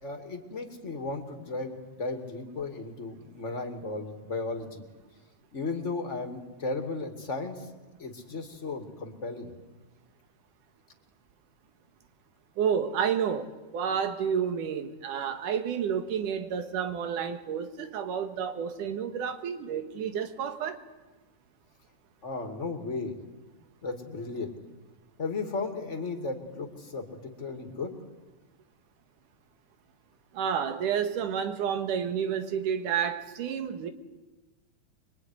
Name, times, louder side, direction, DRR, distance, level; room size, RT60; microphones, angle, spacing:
voice 1, 0.0-4.8 5.5-7.7 8.0-9.6 22.2-23.2 23.8-24.5 25.2-27.9, left 3 dB, 25° left, 2.4 m, -35 dB
voice 2, 12.6-20.8 30.3-33.9, right 7 dB, 90° right, 3.2 m, -30 dB
25.5 x 22.5 x 9.8 m
omnidirectional pair, 3.5 m